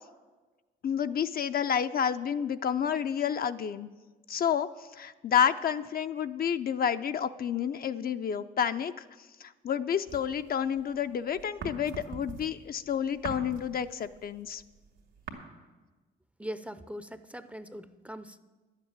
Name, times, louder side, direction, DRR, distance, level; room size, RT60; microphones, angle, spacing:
voice 1, 0.8-3.9 4.3-9.0 9.4-14.6, left 8 dB, 50° left, 9 dB, 0.5 m, -30 dB
sound 1, 10.1-11.0 11.3-15.3, right 5 dB, 80° right, 2.0 m, -42 dB
voice 2, 16.4-18.4, equal, 5° right, 12 dB, 0.5 m, -41 dB
11.0 x 7.4 x 9.5 m, 1.3 s
cardioid pair, 90°, 20 cm